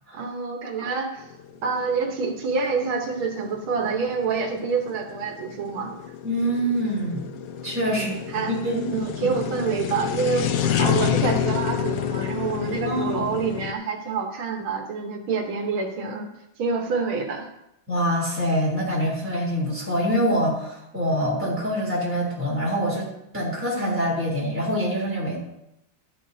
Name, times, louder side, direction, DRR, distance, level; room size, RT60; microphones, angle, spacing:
voice 1, 0.1-1.3 1.6-5.9 7.9-8.5 8.9-16.3 16.6-17.5, right 5 dB, 85° right, 3 dB, 2.0 m, -27 dB
sound 1, 1.2-13.7, left 8 dB, 75° left, 0.8 m, -28 dB
voice 2, 6.2-7.2 7.6-8.1 8.5-8.9 9.2-9.3 12.7-13.2 17.9-23.1 23.3-25.4, equal, 5° right, -5 dB, 3.3 m, -25 dB
12.0 x 11.0 x 2.7 m, 0.82 s
omnidirectional pair, 2.2 m